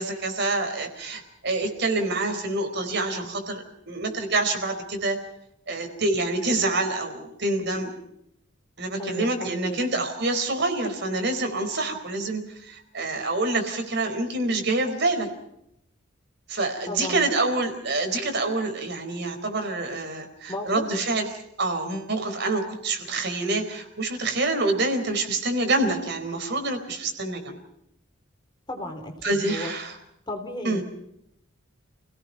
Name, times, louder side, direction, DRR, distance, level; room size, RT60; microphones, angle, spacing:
voice 1, 0.0-5.2 5.7-7.9 8.8-15.3 16.5-27.6 29.2-29.9 30.6-30.8, right 2 dB, 55° right, 5 dB, 4.4 m, -27 dB
voice 2, 9.0-9.8 16.9-17.3 20.5-20.9 28.7-29.7 30.3-30.8, left 1 dB, 20° left, 4 dB, 3.4 m, -34 dB
29.0 x 18.0 x 5.8 m, 0.77 s
head